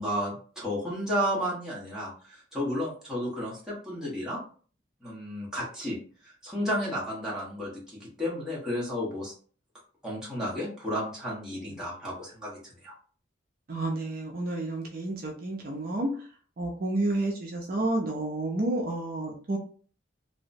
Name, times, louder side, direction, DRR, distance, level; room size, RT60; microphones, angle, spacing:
voice 1, 0.0-4.4 5.0-6.0 6.2-9.3 10.0-12.9, equal, 5° right, -7 dB, 1.1 m, -32 dB
voice 2, 13.7-16.3 16.6-19.6, right 2 dB, 50° right, 0 dB, 0.5 m, -30 dB
2.8 x 2.1 x 2.5 m, 0.42 s
head